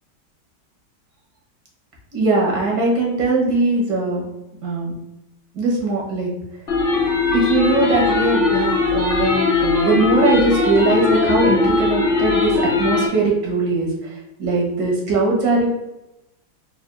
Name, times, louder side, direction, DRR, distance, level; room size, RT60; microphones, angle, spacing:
voice 1, 2.1-4.3 4.6-4.9 5.6-6.3 7.3-13.9 14.4-15.7, right 3 dB, 60° right, -3 dB, 1.9 m, -20 dB
sound 1, 6.7-13.1, left 4 dB, 40° left, 0.8 m, -19 dB
4.4 x 4.0 x 2.3 m, 0.95 s
omnidirectional pair, 2.2 m